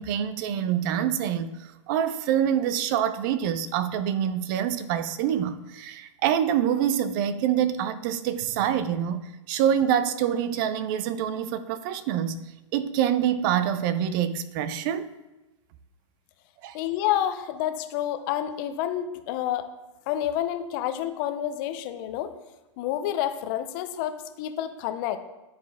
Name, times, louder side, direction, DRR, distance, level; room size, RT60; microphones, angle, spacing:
voice 1, 0.0-12.4 12.7-15.1 16.6-16.8, right 9 dB, 40° right, 0.5 m, -26 dB
voice 2, 16.7-19.7 20.1-22.3 22.8-25.2, left 11 dB, 40° left, 0.7 m, -29 dB
9.5 x 4.1 x 3.5 m
hypercardioid pair, 130°, 16 cm